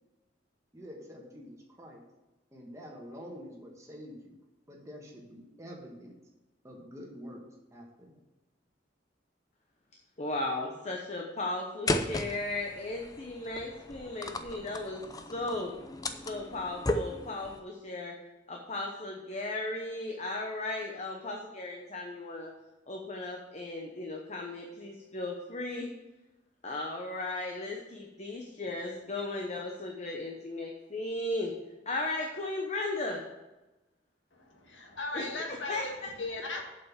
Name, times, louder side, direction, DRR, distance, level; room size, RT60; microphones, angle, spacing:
voice 1, 0.7-2.0 2.5-4.4 4.7-6.1 6.6-7.4 7.7-8.1, equal, 15° right, 0 dB, 1.5 m, -47 dB
voice 2, 10.2-15.0 15.3-15.7 16.2-18.1 18.5-22.5 22.9-25.9 26.6-31.5 31.9-33.2 35.1-35.3 35.7-35.8, left 2 dB, 35° left, 1 dB, 0.9 m, -36 dB
sound 1, 11.9-17.6, left 1 dB, 20° left, 0.5 m, -36 dB
voice 3, 34.3-36.6, left 2 dB, 75° left, 1 dB, 1.8 m, -38 dB
7.6 x 5.6 x 7.3 m, 1.0 s
head